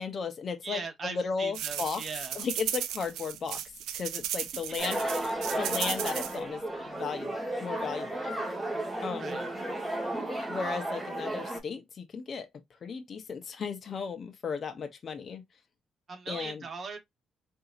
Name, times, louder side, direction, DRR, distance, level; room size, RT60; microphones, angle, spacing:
voice 1, 0.0-2.0 2.3-3.6 3.9-5.0 5.6-8.4 9.0-9.4 10.5-12.5 12.8-15.4 16.3-16.6, left 5 dB, 45° left, 0.7 m, -35 dB
voice 2, 0.6-2.4 4.5-4.9 9.2-9.5 16.1-17.0, right 4 dB, 45° right, 1.2 m, -39 dB
sound 1, 1.5-6.4, right 11 dB, 90° right, 0.4 m, -35 dB
sound 2, 4.8-11.6, right 1 dB, 10° right, 1.5 m, -34 dB
3.8 x 2.7 x 2.5 m
cardioid pair, 90°, 0 cm